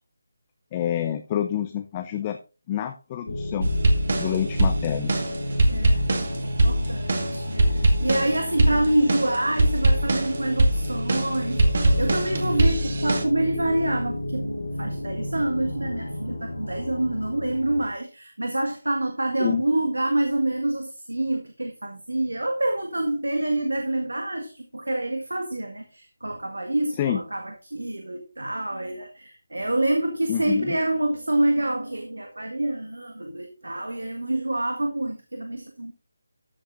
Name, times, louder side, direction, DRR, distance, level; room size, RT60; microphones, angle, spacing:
voice 1, 0.7-2.4 2.7-3.7 4.2-5.2 6.8-6.9 19.4-19.6 27.0-27.2 30.3-30.7, left 10 dB, 25° left, 7 dB, 0.7 m, -27 dB
sound 1, 3.3-17.9, left 1 dB, 80° left, 2.1 m, -32 dB
sound 2, 3.6-13.2, right 1 dB, 50° right, 2.1 m, -22 dB
voice 2, 5.7-6.1 6.4-35.9, right 1 dB, 85° right, 5 dB, 1.6 m, -27 dB
13.5 x 8.0 x 2.6 m, 0.31 s
figure-of-eight pair, 155°, 0 cm